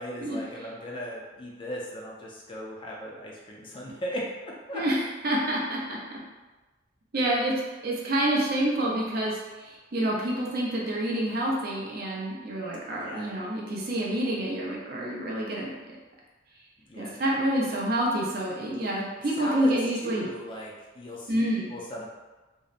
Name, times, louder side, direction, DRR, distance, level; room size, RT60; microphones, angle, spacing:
voice 1, 0.0-4.8 13.0-13.3 16.9-17.3 19.4-19.7 20.0-21.4 21.7-22.1, equal, 25° left, -3 dB, 0.4 m, -37 dB
voice 2, 5.2-6.2 7.1-7.5 7.8-15.7 17.0-20.3 21.3-21.7, right 1 dB, 45° right, -3 dB, 0.5 m, -28 dB
2.7 x 2.0 x 2.4 m, 1.2 s
head